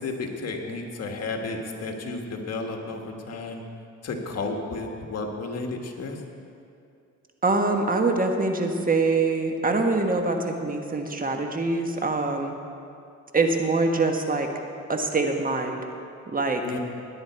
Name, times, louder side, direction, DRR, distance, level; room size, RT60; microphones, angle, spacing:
voice 1, 0.0-3.6 4.0-6.2 16.6-16.8, left 3 dB, 55° left, 2 dB, 1.8 m, -32 dB
voice 2, 7.4-12.5 13.3-14.5 14.9-15.9 16.3-16.6, right 3 dB, 30° right, 4 dB, 1.4 m, -24 dB
17.0 x 10.5 x 4.6 m, 2.5 s
cardioid pair, 90°, 30 cm